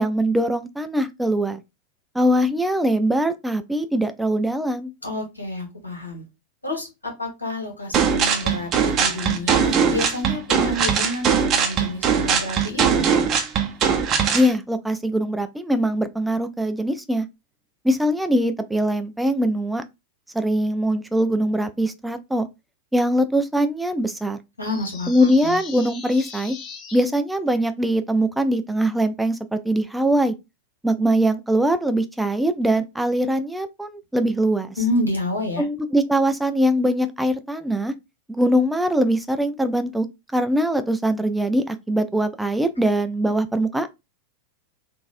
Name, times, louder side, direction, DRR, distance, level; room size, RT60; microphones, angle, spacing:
voice 1, 0.0-1.6 2.1-4.9 14.3-17.3 17.8-19.8 20.3-22.5 22.9-24.4 25.1-26.6 26.9-30.3 30.8-34.7 35.6-37.9 38.3-40.1 40.3-43.9, equal, 5° right, 0.4 m, -22 dB
voice 2, 5.0-6.2 6.6-13.0 24.6-25.6 34.8-35.6, left 1 dB, 80° left, 1.6 m, -29 dB
sound 1, 7.9-14.5, right 7 dB, 35° right, 0.7 m, -20 dB
sound 2, 24.6-27.1, left 5 dB, 30° left, 0.8 m, -39 dB
3.8 x 2.5 x 2.6 m
figure-of-eight pair, 90°, 0 cm